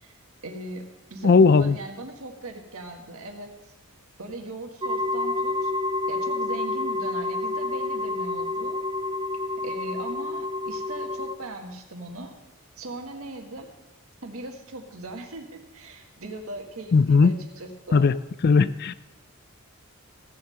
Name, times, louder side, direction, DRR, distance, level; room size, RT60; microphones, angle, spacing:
voice 1, 0.0-3.7 4.2-5.7 6.1-8.8 9.6-12.3 12.8-13.7 14.2-18.1, right 2 dB, 75° right, 4 dB, 1.5 m, -39 dB
voice 2, 1.2-1.8 16.9-17.3 17.9-18.2 18.4-18.9, left 4 dB, 45° left, 16 dB, 0.4 m, -17 dB
sound 1, 4.8-11.4, left 2 dB, 20° right, 0.4 m, -29 dB
15.5 x 5.6 x 6.4 m, 1.0 s
head